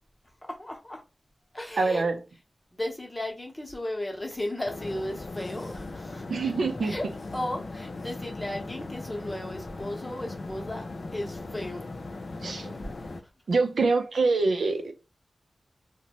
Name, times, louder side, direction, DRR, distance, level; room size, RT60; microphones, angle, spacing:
voice 1, 0.5-1.0 1.5-2.1 2.7-6.2 6.8-7.1 7.3-10.9 11.1-11.8, left 1 dB, 20° left, 0.8 m, -35 dB
voice 2, 1.8-2.2 6.3-7.0 12.4-12.7 13.5-14.9, right 3 dB, 90° right, 0.4 m, -25 dB
sound 1, 4.6-13.2, left 3 dB, 60° left, 0.4 m, -39 dB
2.7 x 2.1 x 2.9 m
wide cardioid pair, 70°, 0 cm